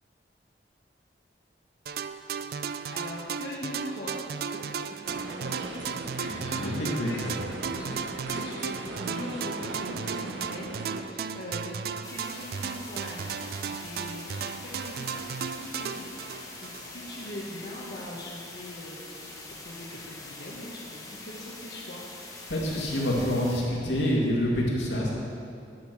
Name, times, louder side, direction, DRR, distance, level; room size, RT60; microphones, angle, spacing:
sound 1, 1.9-17.3, right 6 dB, 55° right, 0.3 m, -35 dB
voice 1, 2.9-4.2 4.5-5.1 6.2-6.3 6.6-7.2 7.7-15.3 15.6-19.3 19.6-22.0, left 1 dB, 60° left, -6 dB, 1.2 m, -42 dB
sound 2, 5.0-11.0, right 2 dB, 90° right, 1.0 m, -38 dB
voice 2, 6.2-7.4 22.5-25.1, equal, 85° left, -3 dB, 2.1 m, -27 dB
sound 3, 12.0-23.6, left 2 dB, 20° left, 1.0 m, -44 dB
10.0 x 6.7 x 6.0 m, 2.4 s
head